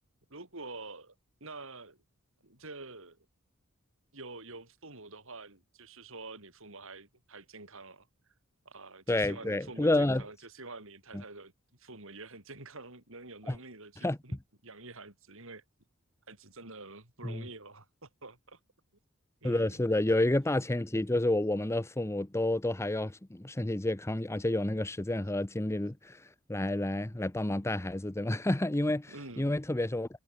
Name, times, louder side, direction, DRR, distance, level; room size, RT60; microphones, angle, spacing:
voice 1, 0.3-1.1 1.4-2.0 2.4-3.2 4.1-8.1 8.7-11.5 11.8-15.6 16.3-18.6 19.4-19.8 29.1-29.5, right 3 dB, 65° right, 7.5 m, -47 dB
voice 2, 9.1-10.2 11.1-11.2 13.5-13.6 14.0-14.2 17.2-17.5 19.4-30.1, left 1 dB, 15° left, 0.7 m, -30 dB
head